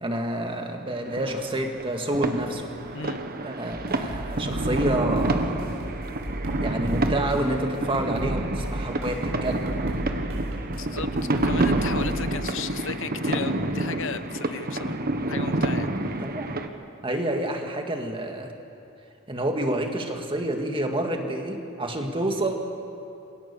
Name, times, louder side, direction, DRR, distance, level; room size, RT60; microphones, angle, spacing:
voice 1, 0.0-2.7 3.4-5.9 6.6-9.7 16.2-16.6 17.0-18.5 19.3-22.5, right 1 dB, 25° right, 3 dB, 2.2 m, -28 dB
sound 1, 1.0-16.7, right 2 dB, 45° right, 1.4 m, -28 dB
voice 2, 2.9-3.2 10.8-11.1 11.4-15.0 15.3-16.2, left 6 dB, 65° left, 11 dB, 0.9 m, -35 dB
sound 2, 3.7-12.2, right 1 dB, 90° right, 6.3 m, -34 dB
27.5 x 22.5 x 7.0 m, 2.7 s
head